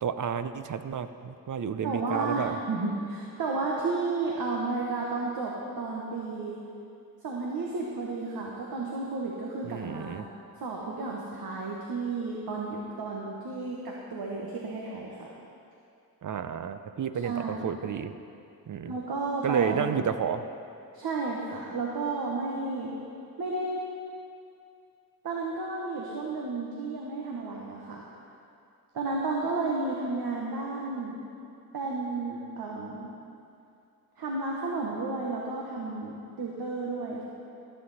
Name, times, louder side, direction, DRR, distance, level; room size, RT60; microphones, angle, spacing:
voice 1, 0.0-2.6 9.6-10.2 16.2-18.1 18.7-18.9 19.4-20.4, right 7 dB, 55° right, 10 dB, 0.6 m, -31 dB
voice 2, 1.8-6.6 7.2-10.2 10.6-15.3 17.2-17.7 18.8-19.9 20.9-22.9 23.4-23.8 25.2-28.0 28.9-31.2 31.7-33.1 34.2-37.2, right 3 dB, 75° right, -2 dB, 1.3 m, -32 dB
14.5 x 7.7 x 4.1 m, 2.5 s
cardioid pair, 50°, 38 cm